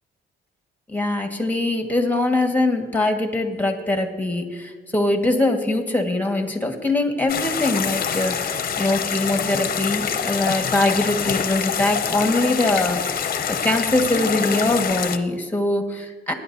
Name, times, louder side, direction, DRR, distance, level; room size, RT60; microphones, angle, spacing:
voice 1, 0.9-16.3, left 2 dB, 10° left, 4 dB, 1.6 m, -22 dB
sound 1, 7.3-15.2, left 7 dB, 45° left, 0.8 m, -25 dB
19.0 x 10.0 x 2.7 m, 1.5 s
cardioid pair, 90°, 20 cm